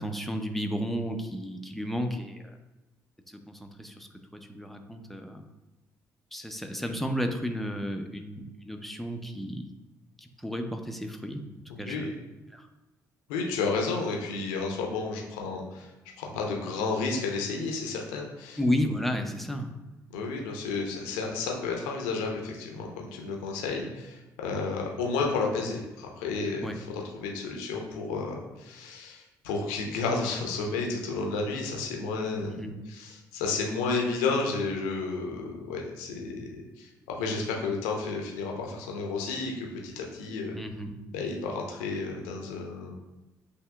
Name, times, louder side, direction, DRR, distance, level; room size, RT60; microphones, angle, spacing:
voice 1, 0.0-2.4 3.3-4.1 4.3-5.4 6.3-9.7 10.2-11.5 11.8-12.1 12.5-12.7 18.6-19.8 26.6-26.8 32.5-32.7 40.6-40.9, equal, ahead, 4 dB, 0.6 m, -32 dB
voice 2, 11.7-12.1 13.3-15.9 16.2-18.6 20.1-40.6 41.1-42.9, left 4 dB, 75° left, 1 dB, 0.7 m, -32 dB
8.1 x 2.8 x 2.3 m, 1.0 s
figure-of-eight pair, 45°, 9 cm